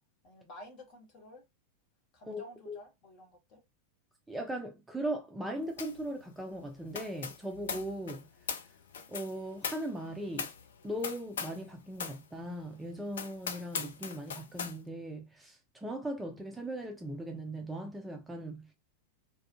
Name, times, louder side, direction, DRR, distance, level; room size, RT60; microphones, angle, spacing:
voice 1, 0.2-1.4 2.1-3.6, equal, 40° left, 1.1 m, -51 dB
voice 2, 2.3-2.8 4.3-8.3 9.1-10.5 10.8-18.7, right 1 dB, 5° right, 0.5 m, -39 dB
sound 1, 5.8-6.1 6.3-11.7 12.0-12.2 12.7-12.8 13.1-14.8, left 6 dB, 65° left, 0.4 m, -40 dB
2.6 x 2.3 x 2.5 m
figure-of-eight pair, 90°, 0 cm